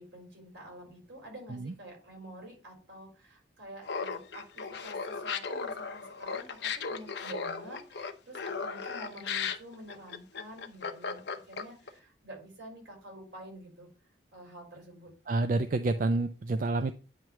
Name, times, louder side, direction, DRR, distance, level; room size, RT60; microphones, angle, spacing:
voice 1, 0.0-13.9 14.3-15.1, right 1 dB, 75° right, 0 dB, 4.3 m, -48 dB
Laughter, 3.8-11.9, left 5 dB, 65° left, 0.8 m, -36 dB
voice 2, 15.3-16.9, right 2 dB, 45° right, 9 dB, 0.4 m, -28 dB
9.3 x 3.1 x 5.7 m, 0.35 s
head